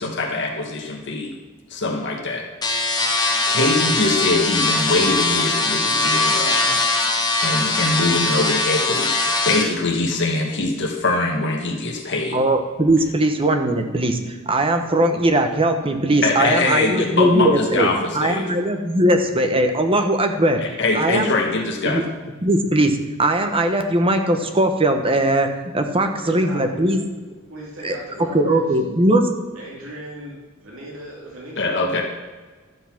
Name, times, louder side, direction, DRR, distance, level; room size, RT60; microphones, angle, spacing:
voice 1, 0.0-1.4 1.7-2.4 3.0-9.1 9.4-12.4 16.2-18.5 20.6-22.1 31.6-32.0, left 2 dB, 60° left, 0 dB, 1.3 m, -23 dB
sound 1, 2.6-9.6, left 3 dB, 20° left, 1.4 m, -21 dB
voice 2, 12.3-17.9 18.1-20.6 20.9-21.3 21.8-22.0 22.4-27.0 27.8-28.0 28.3-29.2, right 1 dB, 25° right, 6 dB, 1.1 m, -19 dB
voice 3, 26.2-27.0 27.5-28.8 29.5-31.9, right 1 dB, 75° right, -4 dB, 2.7 m, -37 dB
12.0 x 8.0 x 6.0 m, 1.3 s
head